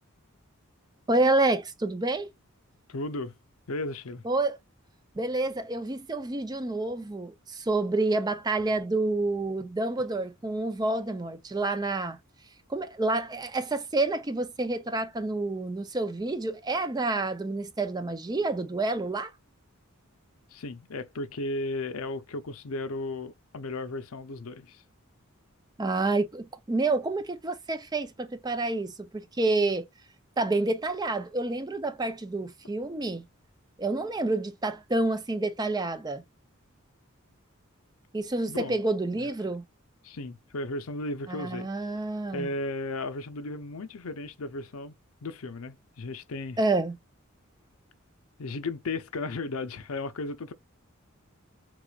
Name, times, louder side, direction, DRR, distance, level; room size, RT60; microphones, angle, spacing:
voice 1, 1.1-2.3 4.2-4.6 5.2-12.2 12.7-19.3 25.8-29.9 30.4-33.3 33.8-36.2 38.1-39.6 41.3-42.5 46.6-47.0, right 2 dB, 20° right, 0.5 m, -28 dB
voice 2, 2.9-3.3 3.7-4.2 20.5-24.8 38.5-38.8 39.1-39.3 40.0-41.7 42.3-45.0 45.2-46.6 48.4-50.5, left 2 dB, 90° left, 0.7 m, -35 dB
4.8 x 3.7 x 2.4 m
head